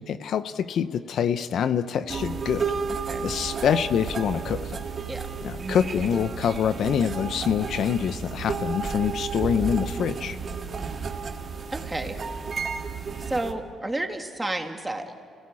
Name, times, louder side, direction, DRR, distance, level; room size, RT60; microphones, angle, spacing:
voice 1, 0.0-2.6 3.2-4.7 5.4-10.4, left 8 dB, 65° left, 12 dB, 0.7 m, -25 dB
sound 1, 2.1-13.5, right 5 dB, 45° right, 1.8 m, -32 dB
voice 2, 11.7-12.2 13.2-15.2, right 2 dB, 15° right, 4 dB, 2.1 m, -31 dB
29.5 x 17.0 x 8.6 m, 2.4 s
cardioid pair, 90°, 0 cm